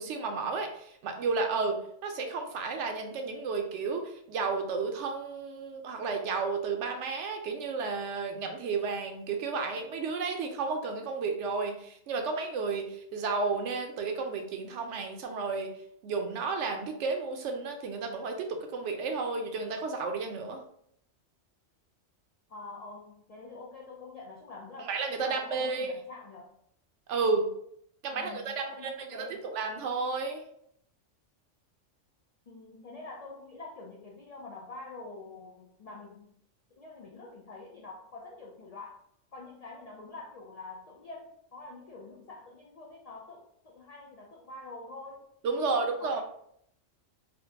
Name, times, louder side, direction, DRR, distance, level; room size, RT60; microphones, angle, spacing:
voice 1, 0.0-15.7 16.0-20.6 24.8-25.9 27.1-27.5 28.0-30.4 45.4-46.2, right 4 dB, 75° right, 4 dB, 0.9 m, -32 dB
voice 2, 22.5-24.9 25.2-26.5 28.1-29.5 32.5-36.3 36.8-39.0 39.3-45.3 45.6-46.2, left 3 dB, 90° left, -2 dB, 0.3 m, -46 dB
3.6 x 2.1 x 2.7 m, 0.70 s
omnidirectional pair, 1.2 m